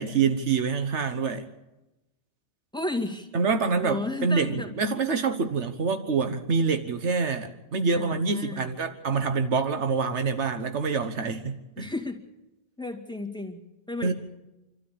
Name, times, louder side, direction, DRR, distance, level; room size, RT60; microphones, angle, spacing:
voice 1, 0.0-1.5 3.3-11.9 14.0-14.1, right 5 dB, 85° right, 8 dB, 1.5 m, -26 dB
voice 2, 2.7-3.3 3.8-4.7 7.9-8.7 11.8-12.2 12.8-13.6 13.9-14.1, left 2 dB, 5° left, 2 dB, 2.2 m, -33 dB
27.0 x 13.0 x 8.6 m, 0.97 s
omnidirectional pair, 1.1 m